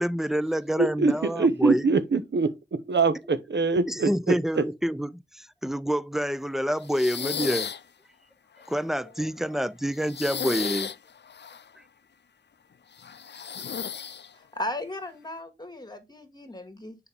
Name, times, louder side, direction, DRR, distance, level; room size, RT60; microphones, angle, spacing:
voice 1, 0.0-1.9 3.9-7.7 8.7-10.9, equal, ahead, 0.5 m, -28 dB
voice 2, 0.8-4.6, right 4 dB, 75° right, 0.8 m, -24 dB
sound 1, 6.8-7.8 8.6-9.6 9.9-11.7 13.0-14.3, left 7 dB, 70° left, 0.4 m, -34 dB
voice 3, 14.3-17.0, left 1 dB, 25° left, 1.8 m, -36 dB
7.1 x 4.9 x 3.4 m
wide cardioid pair, 50°, 18 cm